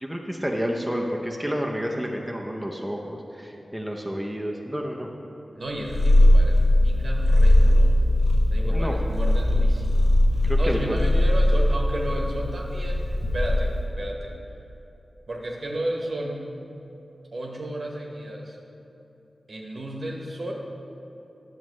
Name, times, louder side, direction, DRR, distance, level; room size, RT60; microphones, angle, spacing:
voice 1, 0.0-5.1 8.7-8.9 10.4-11.0, equal, 5° right, 0 dB, 0.6 m, -30 dB
voice 2, 5.5-7.9 8.5-10.1 10.6-13.1 13.3-14.3 15.3-16.5 17.3-18.6 19.5-20.5, right 1 dB, 60° right, -1 dB, 1.1 m, -33 dB
Purr, 5.8-13.9, left 1 dB, 65° left, 0.5 m, -19 dB
10.5 x 7.3 x 3.1 m, 3.0 s
wide cardioid pair, 105°, 0 cm